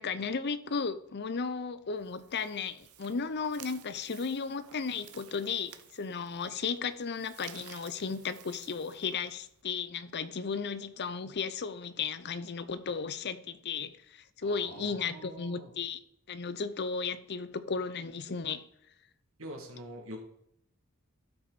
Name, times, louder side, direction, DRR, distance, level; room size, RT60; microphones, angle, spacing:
voice 1, 0.0-16.0 16.3-18.6, left 5 dB, 50° left, 0.6 m, -35 dB
sound 1, 1.9-9.6, right 10 dB, 90° right, 0.9 m, -54 dB
voice 2, 14.4-15.7 19.4-20.2, right 1 dB, 65° right, 2.3 m, -45 dB
12.5 x 6.1 x 4.1 m
head